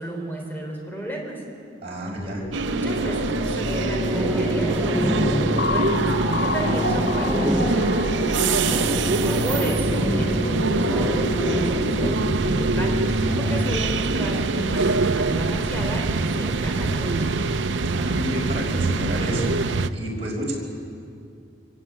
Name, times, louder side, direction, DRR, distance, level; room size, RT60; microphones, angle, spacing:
voice 1, 0.0-1.4 2.6-8.4 9.4-13.0 13.4-17.3, right 1 dB, 10° left, 0 dB, 3.6 m, -32 dB
voice 2, 1.8-2.4 17.9-19.5 19.9-20.5, equal, 35° right, -3 dB, 5.1 m, -29 dB
sound 1, 2.1-13.7, left 1 dB, 85° left, 1.9 m, -28 dB
sound 2, 2.5-19.9, right 3 dB, 85° right, 0.7 m, -25 dB
sound 3, 4.1-12.1, equal, 5° right, 0.6 m, -28 dB
25.0 x 17.5 x 8.9 m, 2.4 s
head